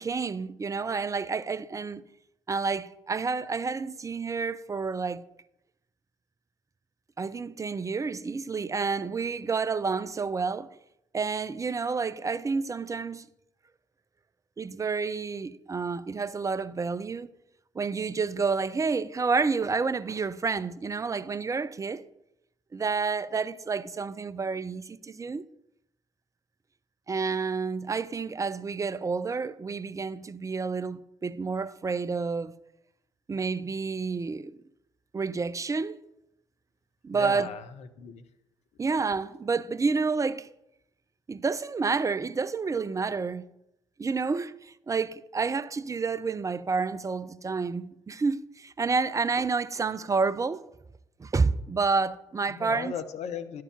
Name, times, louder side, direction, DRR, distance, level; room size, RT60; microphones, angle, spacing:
voice 1, 0.0-2.0 2.5-5.2 7.2-10.7 11.1-13.3 14.6-17.3 17.7-22.0 22.7-25.4 27.1-32.5 33.3-34.6 35.1-36.0 37.0-37.5 38.8-40.5 41.3-43.4 44.0-50.7 51.2-52.9, right 4 dB, 25° right, 0.5 m, -29 dB
voice 2, 37.1-38.2 52.5-53.6, left 7 dB, 55° left, 0.8 m, -37 dB
11.0 x 4.7 x 7.1 m
hypercardioid pair, 45°, 13 cm